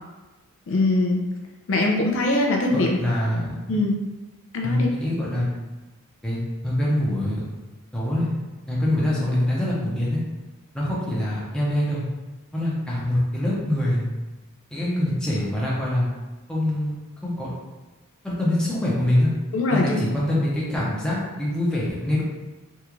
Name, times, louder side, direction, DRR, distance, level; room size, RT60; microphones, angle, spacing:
voice 1, 0.7-1.2 1.7-2.9 3.7-4.0 4.5-4.9 19.5-20.0, left 2 dB, 60° left, 0 dB, 0.4 m, -22 dB
voice 2, 2.7-3.6 4.6-5.5 6.2-6.4 6.6-7.5 7.9-8.3 8.7-10.2 10.7-12.0 12.5-14.0 14.7-16.1 16.5-17.0 17.2-17.5 18.2-19.3 19.7-22.2, left 1 dB, 5° left, -7 dB, 0.7 m, -24 dB
3.5 x 2.4 x 2.9 m, 1.2 s
head